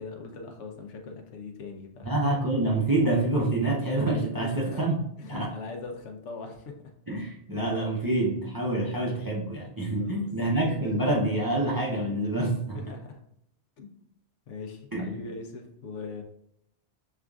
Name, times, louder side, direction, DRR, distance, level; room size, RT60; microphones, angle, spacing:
voice 1, 0.0-2.2 4.4-4.8 5.2-6.9 10.0-10.3 12.7-13.2 13.8-14.0 14.5-16.2, left 4 dB, 85° left, 4 dB, 1.0 m, -41 dB
voice 2, 2.0-4.9 5.3-5.5 7.1-12.8 14.9-15.2, right 2 dB, 30° right, -2 dB, 0.4 m, -27 dB
6.7 x 2.5 x 2.3 m, 0.74 s
omnidirectional pair, 1.2 m